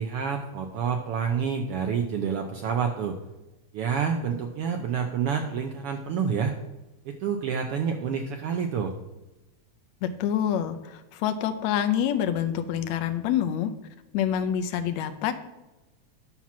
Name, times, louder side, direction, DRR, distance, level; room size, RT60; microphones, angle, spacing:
voice 1, 0.0-3.2 3.7-6.5 7.0-8.9, right 6 dB, 85° right, 4 dB, 1.3 m, -28 dB
voice 2, 10.0-13.7 14.1-15.3, left 9 dB, 75° left, 8 dB, 1.9 m, -27 dB
10.0 x 5.8 x 6.0 m, 1.1 s
omnidirectional pair, 3.3 m